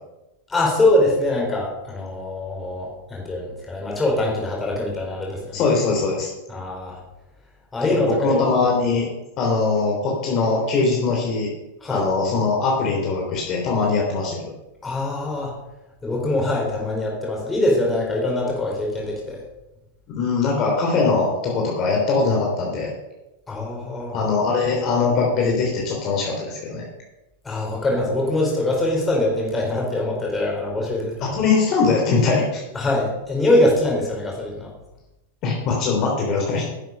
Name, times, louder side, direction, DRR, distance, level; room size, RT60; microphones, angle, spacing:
voice 1, 0.5-5.6 6.5-7.0 7.7-8.4 11.8-12.0 14.8-15.5 16.0-19.4 23.5-24.2 27.4-31.3 32.7-34.7, left 1 dB, 10° left, -2 dB, 4.4 m, -23 dB
voice 2, 5.5-6.3 7.8-9.1 9.4-11.5 11.9-14.4 20.2-22.9 24.1-26.8 31.2-32.6 35.4-36.7, left 4 dB, 35° left, -1 dB, 3.1 m, -21 dB
10.5 x 7.9 x 6.6 m, 0.98 s
supercardioid pair, 140°, 0 cm